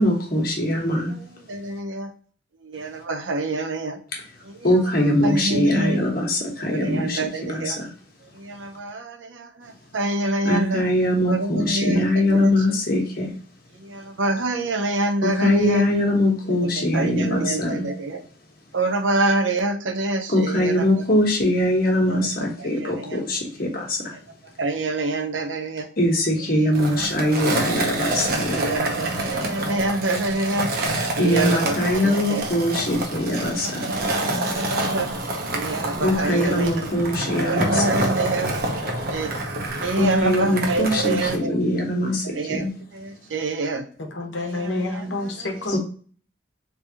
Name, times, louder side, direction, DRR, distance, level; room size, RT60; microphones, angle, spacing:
voice 1, 0.0-1.1 4.6-7.2 7.5-7.9 10.4-13.3 15.2-17.9 20.3-24.0 26.0-28.7 31.2-33.9 36.0-38.1 40.0-42.7, left 1 dB, 50° left, 0 dB, 1.2 m, -22 dB
voice 2, 0.8-2.1 2.6-4.0 4.5-4.7 5.2-6.0 6.7-7.8 8.4-10.8 11.3-12.5 13.8-15.9 16.6-18.2 18.7-20.8 22.1-23.2 24.6-25.9 26.6-27.4 28.6-30.7 31.2-32.5 33.5-35.1 35.5-36.9 37.5-38.5 38.8-39.3 39.8-41.5 42.2-42.7 42.9-43.8 44.6-44.7, right 2 dB, 90° right, 7 dB, 0.7 m, -26 dB
Skateboard, 26.7-41.4, right 1 dB, 50° right, 0.8 m, -27 dB
voice 3, 44.0-45.8, left 2 dB, 85° left, 3 dB, 1.0 m, -28 dB
3.4 x 3.3 x 2.7 m, 0.43 s
head